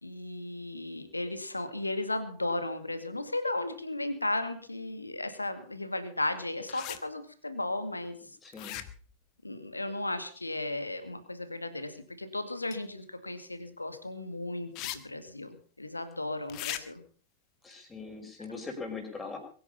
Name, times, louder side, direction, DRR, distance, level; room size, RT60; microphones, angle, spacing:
voice 1, 0.0-8.2 9.4-17.0, left 2 dB, 85° left, 10 dB, 2.1 m, -35 dB
sound 1, 6.7-7.0 8.5-9.1 12.7-12.8 14.7-15.0 15.3-15.4 16.5-16.8, left 14 dB, 40° left, 1.5 m, -38 dB
voice 2, 8.4-8.8 17.6-19.4, left 4 dB, 15° left, 3 dB, 5.3 m, -40 dB
22.5 x 10.0 x 5.6 m, 0.42 s
figure-of-eight pair, 90°, 0 cm